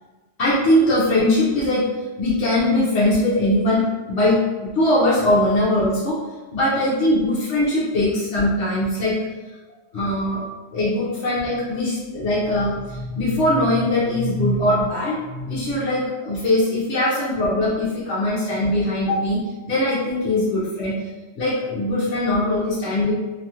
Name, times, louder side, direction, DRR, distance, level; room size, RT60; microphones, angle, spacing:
voice 1, 0.4-1.9 2.2-6.2 6.5-9.2 9.9-10.4 10.7-21.0 21.4-23.1, left 1 dB, 70° left, -8 dB, 1.0 m, -21 dB
2.8 x 2.3 x 2.7 m, 1.2 s
omnidirectional pair, 1.2 m